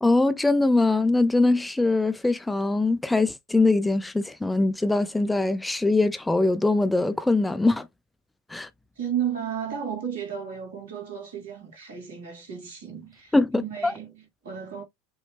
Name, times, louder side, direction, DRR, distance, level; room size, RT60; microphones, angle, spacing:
voice 1, 0.0-7.9 8.5-8.7 13.3-13.9, left 2 dB, 10° left, 0.5 m, -22 dB
voice 2, 9.0-14.8, right 8 dB, 70° right, 2.5 m, -33 dB
5.5 x 3.0 x 3.2 m
figure-of-eight pair, 75°, 0 cm